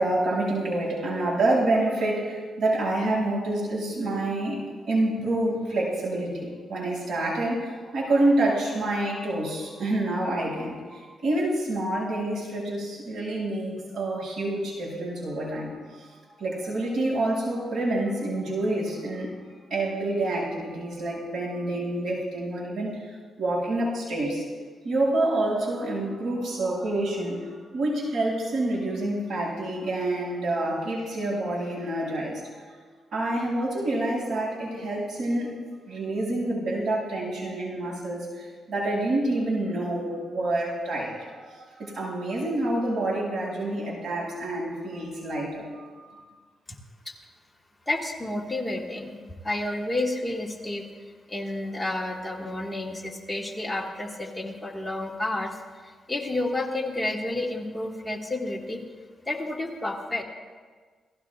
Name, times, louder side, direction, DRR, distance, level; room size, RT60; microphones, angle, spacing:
voice 1, 0.0-16.1 16.4-19.3 19.7-23.0 23.4-24.4 24.8-32.6 33.1-35.6 35.9-46.2, right 1 dB, 75° right, -4 dB, 6.5 m, -27 dB
voice 2, 47.9-50.8 51.3-58.8 59.3-60.2, left 2 dB, 10° left, -1 dB, 1.7 m, -30 dB
28.5 x 17.5 x 2.4 m, 1.5 s
cardioid pair, 110°, 0 cm